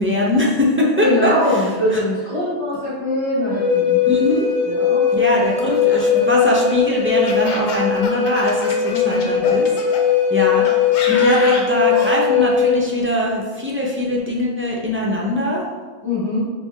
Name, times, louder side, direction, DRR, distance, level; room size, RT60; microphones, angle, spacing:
voice 1, 0.0-1.3 1.9-2.0 4.0-4.5 5.1-10.0 10.3-15.6, left 1 dB, 20° right, -4 dB, 0.4 m, -21 dB
voice 2, 1.0-4.0 4.7-5.2 5.6-5.7 8.9-9.3 16.0-16.4, left 1 dB, 30° left, -10 dB, 1.4 m, -22 dB
Wind instrument woodwind instrument, 3.5-12.8, left 7 dB, 45° left, 0.5 m, -19 dB
Laughter, 5.6-10.0 10.7-12.2, left 3 dB, 90° left, 1.0 m, -29 dB
4.5 x 2.3 x 3.3 m, 1.4 s
omnidirectional pair, 1.1 m